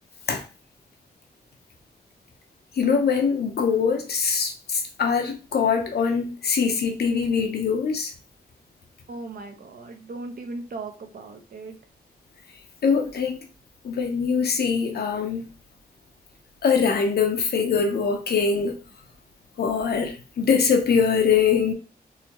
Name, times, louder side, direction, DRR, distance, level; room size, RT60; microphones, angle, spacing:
voice 1, 2.8-8.1 12.8-13.5 13.8-15.5 16.6-18.8 19.6-21.7, left 6 dB, 80° left, 0.8 m, -23 dB
voice 2, 9.1-11.8, right 3 dB, 60° right, 0.8 m, -37 dB
4.0 x 2.8 x 3.1 m
wide cardioid pair, 130°, 16 cm